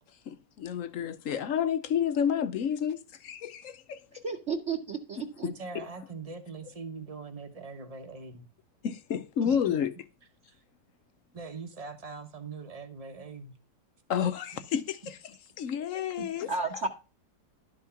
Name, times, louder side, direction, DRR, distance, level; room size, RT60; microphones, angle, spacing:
voice 1, 0.3-4.2 5.4-5.9 8.8-9.9 14.1-16.5, left 8 dB, 60° left, 0.9 m, -30 dB
voice 2, 4.2-5.5 16.5-16.9, right 4 dB, 45° right, 1.2 m, -32 dB
voice 3, 5.4-8.5 9.4-9.7 10.5-10.6 11.3-13.5 16.2-16.3, right 4 dB, 25° right, 0.9 m, -42 dB
12.0 x 4.6 x 5.8 m
omnidirectional pair, 1.9 m